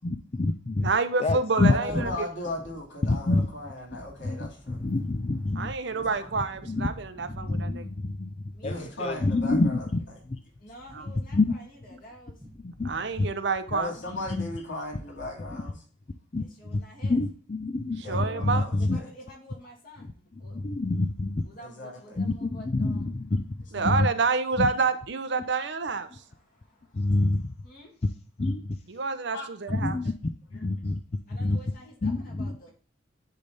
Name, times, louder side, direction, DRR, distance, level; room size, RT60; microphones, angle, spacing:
voice 1, 0.0-0.9 1.2-2.0 3.0-3.5 4.2-5.7 6.7-6.9 7.2-9.8 11.3-11.5 12.6-12.9 13.2-13.3 14.2-14.5 16.3-16.4 17.0-19.0 20.5-21.4 22.2-23.5 23.8-24.1 24.6-24.7 26.9-27.5 28.4-28.8 29.7-30.1 30.5-31.0 31.4-31.6 32.0-32.6, left 2 dB, 35° left, 6 dB, 0.4 m, -27 dB
voice 2, 0.8-2.3 5.6-7.9 10.9-11.0 12.8-13.9 18.1-18.7 23.7-26.1 28.9-30.0, right 4 dB, 65° right, 11 dB, 0.7 m, -28 dB
voice 3, 1.7-4.8 5.9-6.0 8.6-9.9 13.7-15.8 18.0-19.1 21.6-22.2 29.3-29.5 30.5-30.6, left 2 dB, 80° left, 0 dB, 2.8 m, -37 dB
sound 1, 1.9-15.7, equal, 10° right, 1.1 m, -47 dB
voice 4, 8.5-8.9 10.6-12.4 16.4-17.2 18.8-20.6 21.4-23.1 26.0-27.1 27.6-28.0 31.2-32.7, equal, 50° left, -1 dB, 2.5 m, -50 dB
10.0 x 3.4 x 4.1 m, 0.42 s
head